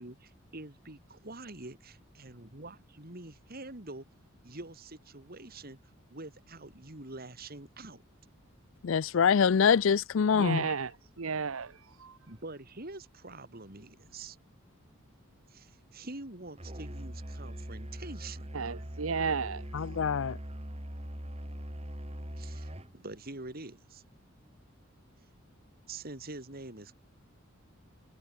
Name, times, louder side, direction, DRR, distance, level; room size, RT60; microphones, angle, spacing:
voice 1, 0.0-4.1 4.4-5.8 6.1-8.0 12.3-14.4 15.5-18.5 22.4-24.0 25.9-26.9, right 2 dB, 45° right, 2.9 m, -45 dB
voice 2, 8.8-10.7 19.7-20.4, left 6 dB, 65° left, 0.4 m, -25 dB
voice 3, 10.3-10.9 11.2-11.7 12.0-12.1 18.5-19.6, right 5 dB, 80° right, 0.9 m, -32 dB
Musical instrument, 16.6-23.0, equal, 30° right, 3.7 m, -41 dB
head